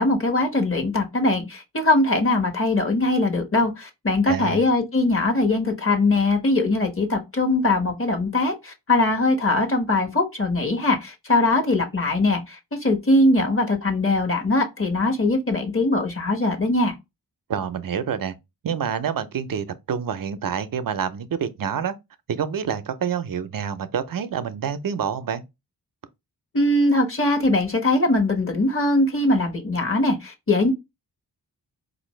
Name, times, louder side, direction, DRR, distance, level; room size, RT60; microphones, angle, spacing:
voice 1, 0.0-16.9 26.5-30.7, left 2 dB, 30° left, 1.2 m, -21 dB
voice 2, 4.3-4.6 17.5-18.4 18.6-22.0 22.3-25.4, right 7 dB, 55° right, 0.6 m, -27 dB
4.2 x 2.5 x 3.1 m
cardioid pair, 60°, 41 cm